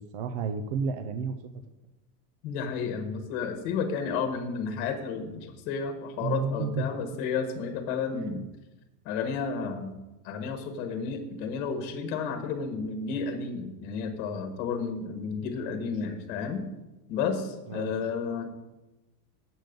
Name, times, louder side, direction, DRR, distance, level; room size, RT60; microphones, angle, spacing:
voice 1, 0.0-1.4 6.2-6.9 8.1-8.4 17.7-17.9, right 5 dB, 40° right, 9 dB, 0.4 m, -31 dB
voice 2, 2.4-8.4 9.0-10.0 10.2-16.7 17.1-18.5, left 5 dB, 45° left, 6 dB, 1.3 m, -32 dB
7.7 x 7.4 x 5.2 m, 1.0 s
supercardioid pair, 170°, 47 cm